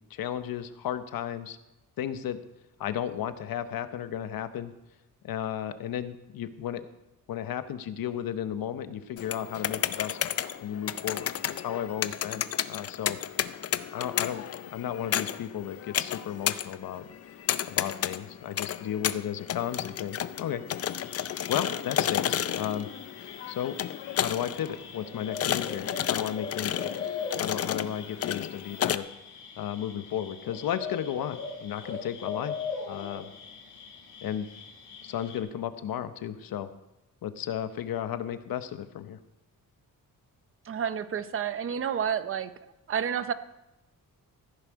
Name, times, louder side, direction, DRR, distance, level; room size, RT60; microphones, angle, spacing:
voice 1, 0.1-1.6 2.0-2.4 2.8-4.7 5.2-6.9 7.3-11.3 11.6-13.2 13.9-17.1 17.7-20.6 21.0-21.2 21.5-22.9 23.5-23.8 24.1-27.0 27.4-29.1 29.6-32.6 32.9-33.3 34.2-34.5 35.0-36.7 37.2-39.2, left 10 dB, 85° left, 11 dB, 0.9 m, -34 dB
sound 1, 9.2-29.0, left 10 dB, 45° left, 0.5 m, -32 dB
sound 2, 20.8-35.4, left 5 dB, 60° left, 2.8 m, -41 dB
voice 2, 40.7-42.5 42.9-43.3, right 8 dB, 40° right, 13 dB, 0.6 m, -30 dB
15.0 x 10.0 x 4.6 m, 0.91 s
wide cardioid pair, 165°, 34 cm